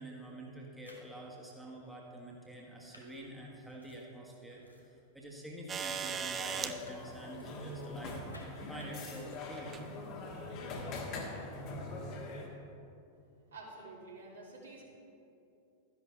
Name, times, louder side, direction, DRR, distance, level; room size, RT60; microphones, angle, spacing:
voice 1, 0.0-8.2 8.7-9.8, right 1 dB, 5° right, -3 dB, 1.5 m, -47 dB
sound 1, 0.7-1.3 1.8-1.9 2.6-5.0 5.2-5.5 5.7-6.4 6.7-9.9, left 1 dB, 85° left, 1.1 m, -59 dB
sound 2, 5.7-6.7 8.1-8.2 9.6-9.8 10.8-10.9, right 6 dB, 25° right, 0.5 m, -37 dB
sound 3, 6.4-12.5, left 2 dB, 40° left, 1.5 m, -43 dB
voice 2, 13.5-14.8, right 3 dB, 70° right, -4 dB, 2.4 m, -49 dB
12.5 x 10.5 x 3.3 m, 2.7 s
figure-of-eight pair, 90°, 0 cm